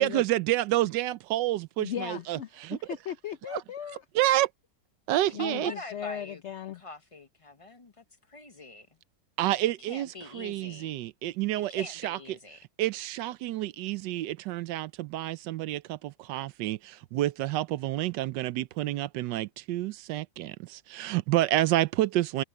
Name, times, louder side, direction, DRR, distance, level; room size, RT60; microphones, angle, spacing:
voice 1, 0.0-2.8 3.5-3.6 4.1-4.5 5.1-5.7 9.4-12.4 12.8-22.4, right 15 dB, 85° right, 1.3 m, -29 dB
voice 2, 1.8-4.0 5.3-6.8, left 9 dB, 75° left, 0.6 m, -37 dB
voice 3, 5.4-6.4 6.7-8.9 9.9-10.9 11.7-12.6, left 2 dB, 30° left, 0.6 m, -44 dB
omnidirectional pair, 1.9 m